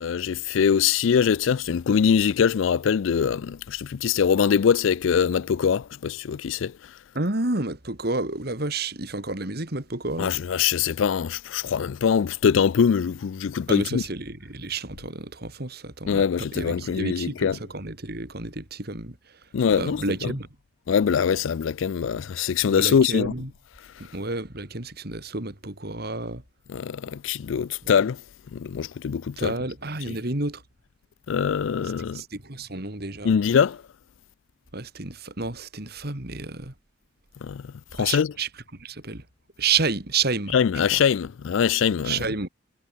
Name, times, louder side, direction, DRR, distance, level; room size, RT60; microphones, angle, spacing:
voice 1, 0.0-6.7 10.2-14.0 16.1-17.6 19.5-20.3 20.9-23.3 26.7-28.2 28.5-29.5 30.1-30.2 31.3-32.2 33.2-33.8 37.4-38.3 40.5-42.2, left 7 dB, 75° left, 0.4 m, -23 dB
voice 2, 7.1-10.3 13.7-19.4 19.7-20.5 22.8-23.5 24.0-26.4 29.4-30.6 32.1-33.3 34.7-36.7 37.9-39.2 39.6-40.6 40.9-41.0 42.0-42.5, right 3 dB, 50° right, 2.8 m, -30 dB
head